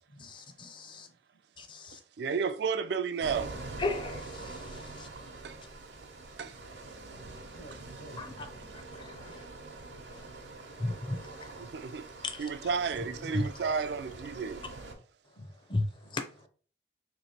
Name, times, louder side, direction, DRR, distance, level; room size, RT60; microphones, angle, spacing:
voice 1, 0.2-1.1 1.6-2.0 3.8-5.1 8.2-8.5 8.9-9.4 10.1-10.2 10.8-11.7 12.2-12.7 13.3-13.5 15.7-16.5, left 2 dB, 25° left, 0.5 m, -36 dB
voice 2, 0.7-1.2 7.5-8.3 10.7-10.8 12.6-13.3 15.4-15.5, left 1 dB, 60° left, 0.9 m, -49 dB
voice 3, 2.2-3.5 5.1-5.6 6.4-6.5 11.6-12.1 12.4-14.6, right 5 dB, 70° right, 0.3 m, -32 dB
sound 1, 3.2-14.9, right 2 dB, 85° right, 0.8 m, -45 dB
3.0 x 2.8 x 4.3 m
head